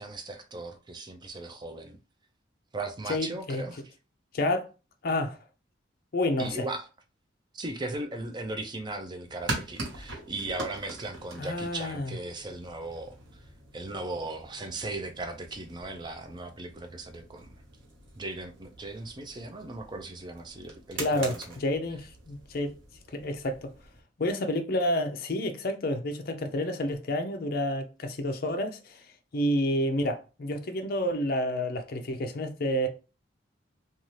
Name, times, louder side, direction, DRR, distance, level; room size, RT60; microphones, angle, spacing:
voice 1, 0.0-2.0 2.7-3.8 6.4-6.9 7.5-13.2 13.7-17.5 18.2-21.6, right 2 dB, 25° right, 0.4 m, -37 dB
voice 2, 3.1-3.6 4.3-4.7 5.0-5.4 6.1-6.7 11.4-12.1 21.0-22.7 23.1-23.7 24.2-29.0 29.3-32.9, left 1 dB, 50° left, 0.5 m, -29 dB
sound 1, 9.2-24.0, right 2 dB, 90° right, 1.1 m, -43 dB
2.7 x 2.4 x 3.1 m
head